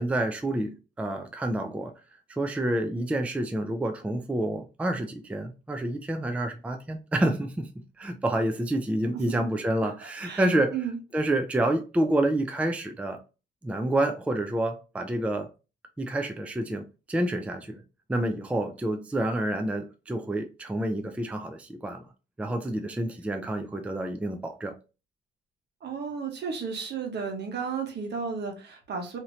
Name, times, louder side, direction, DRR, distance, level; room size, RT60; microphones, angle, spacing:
voice 1, 0.0-1.9 2.3-7.7 8.0-10.8 11.1-13.2 13.6-15.5 16.0-17.8 18.1-22.1 22.4-24.8, right 1 dB, 5° right, 0.4 m, -28 dB
voice 2, 10.2-11.0 25.8-29.2, right 6 dB, 60° right, 1.1 m, -33 dB
3.0 x 2.8 x 2.6 m
cardioid pair, 90°, 20 cm